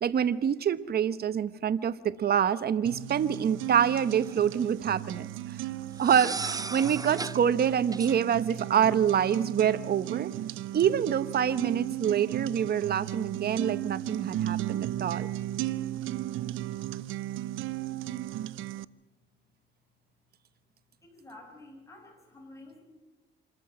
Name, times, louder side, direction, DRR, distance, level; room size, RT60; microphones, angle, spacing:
voice 1, 0.0-5.6 6.0-10.3 10.7-15.3, right 8 dB, 50° right, 15 dB, 1.0 m, -26 dB
sound 1, 2.8-18.8, right 14 dB, 85° right, 0.6 m, -35 dB
sound 2, 3.8-4.4 6.0-7.4 7.9-8.1, right 4 dB, 20° right, 0.6 m, -36 dB
voice 2, 21.0-22.8, left 2 dB, 15° left, 0 dB, 7.8 m, -50 dB
26.0 x 14.0 x 7.7 m, 1.2 s
cardioid pair, 90°, 20 cm